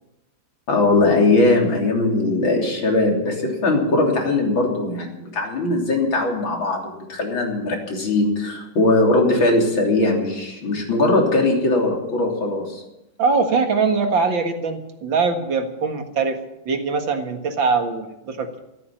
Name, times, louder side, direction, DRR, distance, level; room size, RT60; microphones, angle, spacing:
voice 1, 0.7-12.8, left 2 dB, 85° left, 0 dB, 4.1 m, -20 dB
voice 2, 13.2-16.4 16.7-18.6, right 4 dB, 75° right, 5 dB, 2.5 m, -22 dB
14.0 x 14.0 x 7.4 m, 0.90 s
omnidirectional pair, 2.1 m